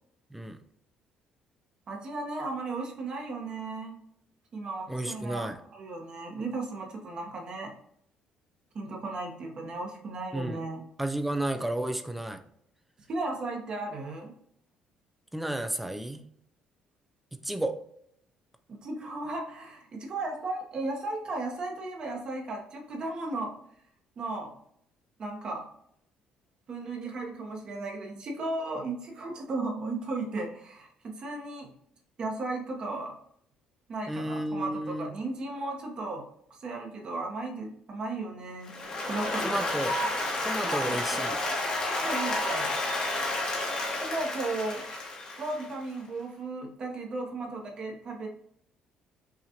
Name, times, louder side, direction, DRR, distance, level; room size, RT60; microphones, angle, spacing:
voice 1, 1.9-4.0 4.5-7.7 8.7-10.8 13.1-14.3 18.7-23.5 24.2-24.5 25.2-25.7 26.7-31.7 32.2-33.2 33.9-36.2 36.5-38.7 39.1-39.7 40.6-41.0 41.9-42.7 44.0-44.8 45.4-48.3, right 2 dB, 45° right, 0 dB, 1.0 m, -35 dB
voice 2, 4.9-5.6 10.3-10.6 11.0-12.4 15.3-16.2 17.4-17.7 34.1-35.1 39.4-40.0 40.4-41.4, right 1 dB, 5° right, 7 dB, 0.4 m, -32 dB
Applause, 38.7-45.9, left 2 dB, 40° left, 1.3 m, -31 dB
5.7 x 2.4 x 2.8 m, 0.68 s
cardioid pair, 125°, 2 cm